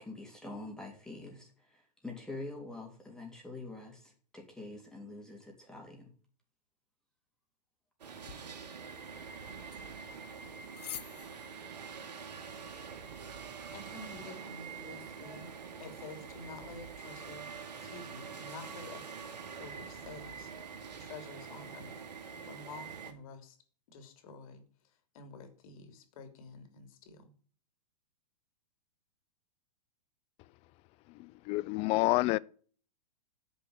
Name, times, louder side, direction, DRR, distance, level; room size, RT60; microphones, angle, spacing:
voice 1, 0.0-6.1, left 2 dB, 5° left, 3.1 m, -45 dB
sound 1, 8.0-23.1, right 6 dB, 80° right, 2.1 m, -45 dB
sound 2, 8.2-14.2, left 10 dB, 75° left, 1.0 m, -52 dB
voice 2, 13.7-19.0 19.5-20.5 21.0-22.0 22.5-23.6 23.9-27.3, left 3 dB, 55° left, 3.1 m, -49 dB
voice 3, 31.5-32.4, left 21 dB, 30° left, 0.4 m, -27 dB
10.0 x 5.4 x 8.0 m
hypercardioid pair, 125°, 21 cm